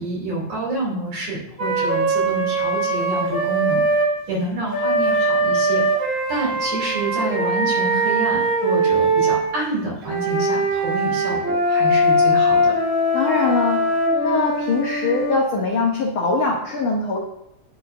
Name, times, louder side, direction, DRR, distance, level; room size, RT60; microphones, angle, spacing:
voice 1, 0.0-4.0 4.3-12.7, right 2 dB, 55° right, -4 dB, 3.6 m, -28 dB
Wind instrument woodwind instrument, 1.6-4.1 4.7-9.4 10.0-15.4, right 1 dB, 30° right, 2.1 m, -21 dB
voice 2, 13.1-13.9 14.2-17.2, left 3 dB, 75° left, -1 dB, 1.2 m, -22 dB
10.5 x 4.7 x 2.5 m, 0.83 s
omnidirectional pair, 3.4 m